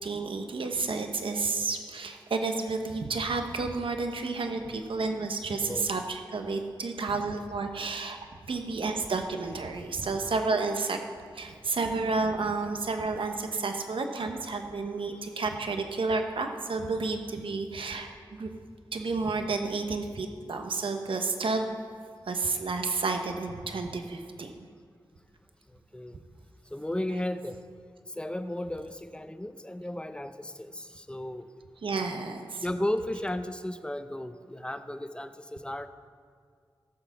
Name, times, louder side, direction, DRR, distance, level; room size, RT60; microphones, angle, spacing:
voice 1, 0.0-8.2 8.5-11.0 11.3-18.5 18.9-21.7 22.3-24.7 31.8-32.7, right 3 dB, 85° right, 5 dB, 1.1 m, -31 dB
voice 2, 26.7-27.6 28.2-31.5 32.6-35.9, left 1 dB, 10° left, 10 dB, 0.7 m, -34 dB
16.5 x 7.4 x 5.7 m, 2.1 s
wide cardioid pair, 75°, 9 cm